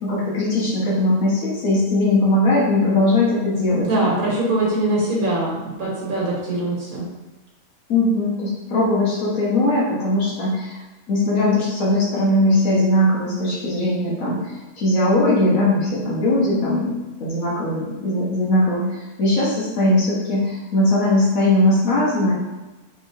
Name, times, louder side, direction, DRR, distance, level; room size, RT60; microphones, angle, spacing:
voice 1, 0.0-4.1 7.9-10.8 11.1-16.9 17.2-22.3, left 1 dB, 70° left, -6 dB, 1.4 m, -20 dB
voice 2, 3.7-7.0, right 2 dB, 80° right, -5 dB, 1.5 m, -22 dB
4.3 x 3.0 x 2.7 m, 1.1 s
omnidirectional pair, 1.5 m